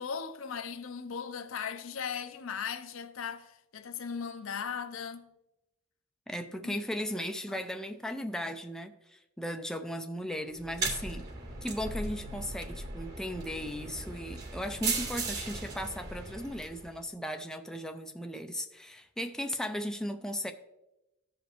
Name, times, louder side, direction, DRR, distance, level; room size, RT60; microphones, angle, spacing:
voice 1, 0.0-5.2 6.6-6.7 7.5-7.6, left 6 dB, 70° left, 0.6 m, -38 dB
voice 2, 6.3-11.3 11.6-20.5, equal, 5° left, 0.4 m, -37 dB
sound 1, 10.6-17.0, right 3 dB, 55° right, 2.7 m, -37 dB
14.5 x 5.0 x 3.1 m
head